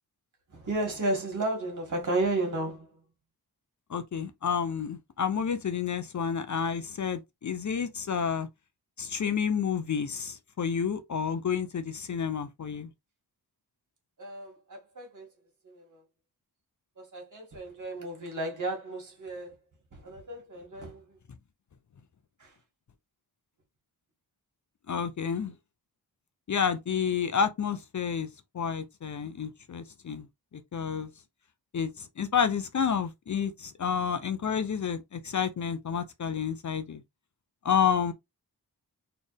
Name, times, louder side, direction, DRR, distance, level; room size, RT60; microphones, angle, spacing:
voice 1, 0.5-2.9 14.2-15.3 15.6-16.0 17.0-19.6 19.9-21.2 22.4-22.5, right 2 dB, 50° right, 2.2 m, -33 dB
voice 2, 3.9-8.5 9.0-12.9 24.9-25.5 26.5-28.3 28.5-30.3 30.7-31.1 31.7-37.0 37.6-38.1, left 7 dB, 50° left, 0.6 m, -30 dB
4.3 x 3.3 x 3.4 m
wide cardioid pair, 165°, 39 cm